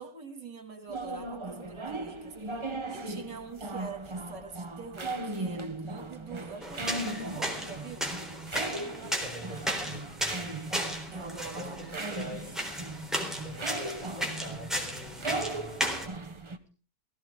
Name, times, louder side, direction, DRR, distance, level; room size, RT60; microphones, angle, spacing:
voice 1, 0.0-2.3 2.9-8.1 11.1-12.3, right 4 dB, 75° right, 6 dB, 3.1 m, -44 dB
sound 1, 0.9-16.6, right 2 dB, 25° right, 0.7 m, -38 dB
sound 2, 6.6-16.1, equal, ahead, 3.6 m, -35 dB
voice 2, 8.5-10.9 11.4-12.6 13.3-16.1, left 1 dB, 25° left, -1 dB, 6.3 m, -45 dB
18.5 x 15.5 x 3.7 m, 0.35 s
omnidirectional pair, 1.9 m